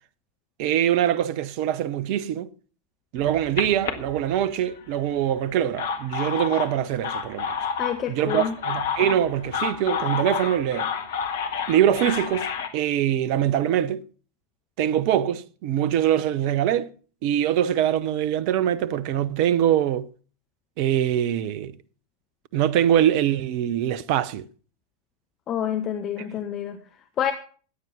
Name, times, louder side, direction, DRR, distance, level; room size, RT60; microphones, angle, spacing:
voice 1, 0.6-2.5 3.1-7.6 8.1-10.9 11.7-12.5 12.7-14.0 14.8-16.9 17.2-20.1 20.8-21.8 22.5-24.5, right 10 dB, 45° right, 0.7 m, -23 dB
sound 1, 3.2-4.8 5.5-12.7, left 6 dB, 60° left, 1.7 m, -30 dB
voice 2, 7.8-8.6 25.5-26.8 27.2-27.3, left 9 dB, 30° left, 1.1 m, -27 dB
14.5 x 9.2 x 5.8 m
figure-of-eight pair, 90°, 0 cm